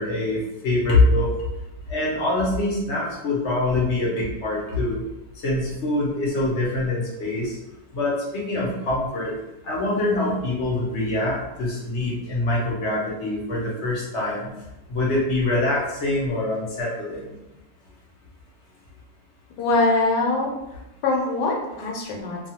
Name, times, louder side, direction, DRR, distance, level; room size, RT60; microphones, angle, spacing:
voice 1, 0.0-1.3 1.9-5.0 5.4-7.6 7.9-9.3 9.6-14.5 14.9-17.3, left 2 dB, 50° left, -4 dB, 0.9 m, -24 dB
voice 2, 19.6-20.5 21.0-22.4, left 3 dB, 90° left, 0 dB, 1.3 m, -22 dB
2.7 x 2.3 x 2.8 m, 0.96 s
omnidirectional pair, 1.8 m